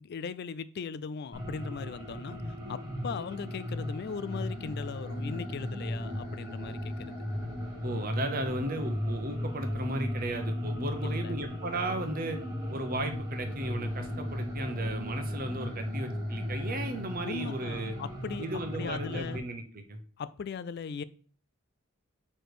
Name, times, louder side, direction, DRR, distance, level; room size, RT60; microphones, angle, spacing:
voice 1, 0.0-7.1 11.0-11.3 17.2-18.5 18.7-19.4 20.2-21.0, left 5 dB, 50° left, 0.3 m, -38 dB
sound 1, 1.3-19.4, left 1 dB, 15° right, 1.4 m, -36 dB
voice 2, 7.8-12.4 12.7-17.9 18.4-20.0, right 1 dB, 45° right, 0.9 m, -35 dB
6.1 x 3.3 x 4.9 m
head